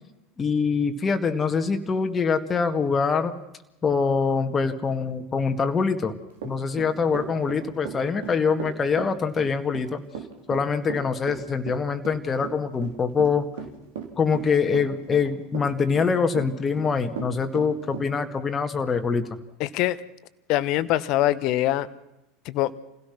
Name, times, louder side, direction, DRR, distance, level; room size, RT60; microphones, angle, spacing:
voice 1, 0.4-3.3 3.8-6.1 6.4-10.0 10.5-13.5 14.2-19.3, left 5 dB, 25° left, 6 dB, 2.0 m, -24 dB
Run / Walk footsteps, 6.4-18.1, right 7 dB, 65° right, 3.7 m, -36 dB
voice 2, 19.6-20.0 20.5-21.9 22.4-22.8, left 14 dB, 50° left, 17 dB, 1.1 m, -23 dB
28.5 x 17.0 x 6.1 m, 0.94 s
figure-of-eight pair, 75°, 0 cm